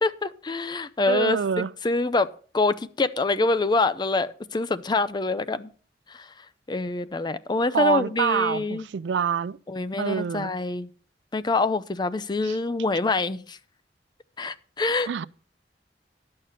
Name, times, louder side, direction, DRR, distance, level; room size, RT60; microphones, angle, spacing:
voice 1, 0.0-5.7 6.1-6.3 6.7-8.9 9.7-10.9 11.3-13.6 14.4-15.1, left 3 dB, 25° left, 0.5 m, -25 dB
voice 2, 1.1-1.7 7.7-9.6 10.0-10.5 12.4-12.6 15.1-15.2, right 7 dB, 80° right, 0.4 m, -26 dB
11.0 x 6.7 x 5.6 m
head